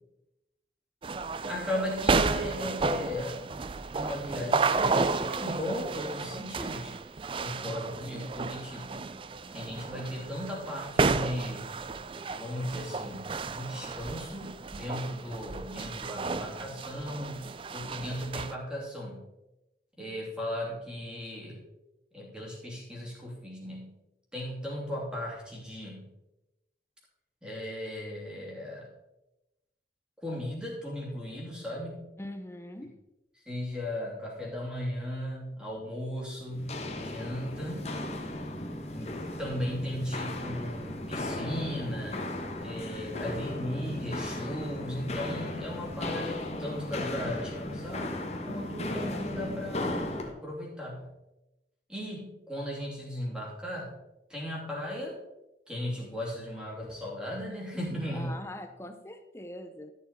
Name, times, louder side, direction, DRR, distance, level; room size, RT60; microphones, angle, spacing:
sound 1, 1.0-18.5, right 4 dB, 30° right, 0.3 m, -32 dB
voice 1, 1.5-3.5 3.9-7.0 7.4-9.1 9.5-11.7 12.3-19.3 20.0-21.6 22.1-24.0 24.3-26.1 27.4-28.9 30.2-32.1 33.5-37.9 38.9-51.1 51.9-54.0 54.3-55.2 55.7-58.4, left 1 dB, 5° right, -3 dB, 2.8 m, -36 dB
voice 2, 32.2-33.0 58.1-59.9, left 1 dB, 15° left, 8 dB, 0.7 m, -42 dB
Walk footsteps, 36.5-50.3, left 1 dB, 40° left, 1.2 m, -36 dB
13.0 x 6.8 x 4.1 m, 0.96 s
head